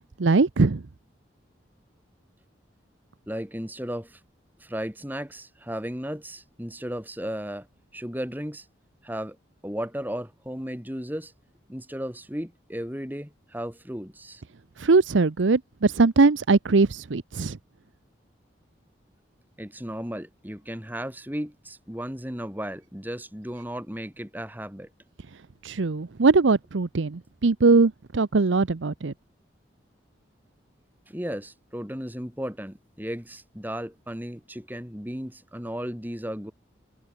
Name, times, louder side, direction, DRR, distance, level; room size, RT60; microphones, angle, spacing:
voice 1, 0.2-0.8 14.8-17.6 25.6-29.1, right 3 dB, 80° right, 0.7 m, -21 dB
voice 2, 3.3-4.2 4.6-7.7 7.9-8.7 9.0-9.4 9.6-11.3 11.7-14.4 19.6-24.9 31.1-36.5, equal, 10° right, 2.9 m, -35 dB
head